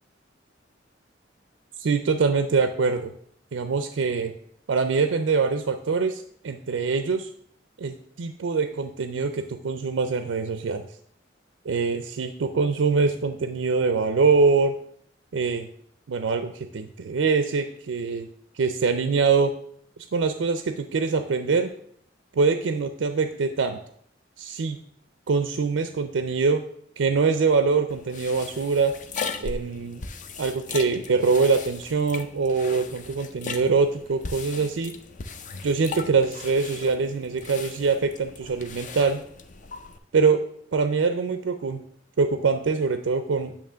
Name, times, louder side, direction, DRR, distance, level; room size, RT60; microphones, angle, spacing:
voice 1, 1.8-3.1 3.5-4.3 4.7-7.3 7.8-10.8 11.6-14.7 15.3-15.7 16.1-18.3 18.5-19.5 20.1-21.7 22.4-23.8 24.4-24.8 25.3-26.6 27.0-28.9 29.4-30.0 30.4-34.9 35.6-39.2 40.1-40.4 40.7-41.8 42.2-43.5, right 4 dB, 90° right, 9 dB, 0.4 m, -24 dB
sound 1, 27.9-40.0, left 5 dB, 45° left, 0.5 m, -38 dB
8.9 x 3.0 x 6.1 m, 0.66 s
head